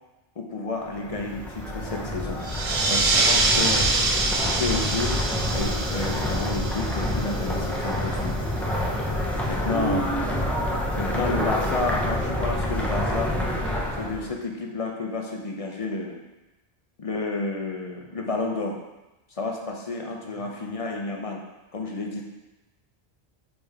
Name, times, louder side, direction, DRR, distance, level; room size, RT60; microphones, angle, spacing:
voice 1, 0.4-2.4 2.8-3.8 4.4-5.2 5.5-8.3 9.5-10.1 11.0-13.4 14.0-16.2 17.0-18.8 19.4-21.4 21.7-22.2, left 3 dB, 40° left, 1 dB, 0.7 m, -30 dB
sound 1, 0.8-14.3, left 1 dB, ahead, 0.6 m, -27 dB
sound 2, 2.4-7.6, right 3 dB, 40° right, 0.5 m, -25 dB
voice 2, 3.5-3.9 9.7-10.6 20.3-20.7, right 3 dB, 65° right, -9 dB, 2.2 m, -33 dB
5.3 x 5.0 x 3.6 m, 1.0 s
omnidirectional pair, 1.1 m